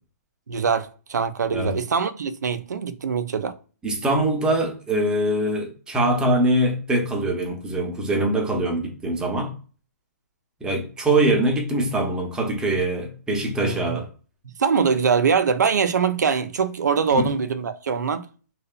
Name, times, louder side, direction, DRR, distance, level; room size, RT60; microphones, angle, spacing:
voice 1, 0.5-3.5 13.6-14.0 14.6-18.3, right 6 dB, 85° right, 0.4 m, -23 dB
voice 2, 3.8-9.5 10.6-14.1 17.1-17.3, right 1 dB, 10° right, 0.6 m, -23 dB
2.7 x 2.1 x 2.3 m
hypercardioid pair, 140°, 9 cm